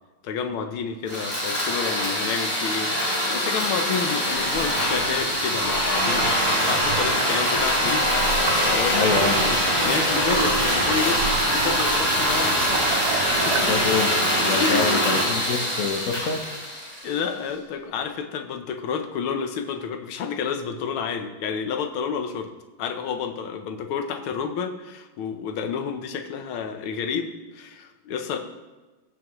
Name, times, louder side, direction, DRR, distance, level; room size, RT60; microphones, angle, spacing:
voice 1, 0.2-2.9 3.3-9.0 9.3-11.2 11.5-12.9 13.1-13.8 14.6-15.0 15.3-15.6 17.0-22.5 22.8-28.4, left 6 dB, 90° left, 6 dB, 1.7 m, -30 dB
sound 1, 1.1-17.2, equal, 20° left, 3.1 m, -23 dB
sound 2, 4.4-14.1, right 7 dB, 65° right, 1.0 m, -31 dB
voice 2, 8.9-9.4 13.6-14.1 14.4-16.4, left 5 dB, 55° left, 5 dB, 1.0 m, -26 dB
18.5 x 6.3 x 3.1 m, 1.2 s
omnidirectional pair, 2.3 m